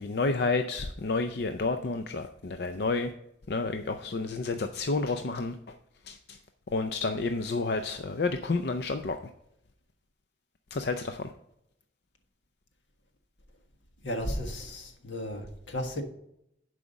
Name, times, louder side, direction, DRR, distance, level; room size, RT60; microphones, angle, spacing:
voice 1, 0.0-3.1 3.5-5.7 6.1-6.4 6.7-9.2 10.7-11.3, left 3 dB, 55° left, 7 dB, 0.5 m, -30 dB
voice 2, 14.0-16.0, left 1 dB, 80° left, 4 dB, 1.5 m, -34 dB
11.0 x 4.9 x 5.1 m, 0.78 s
head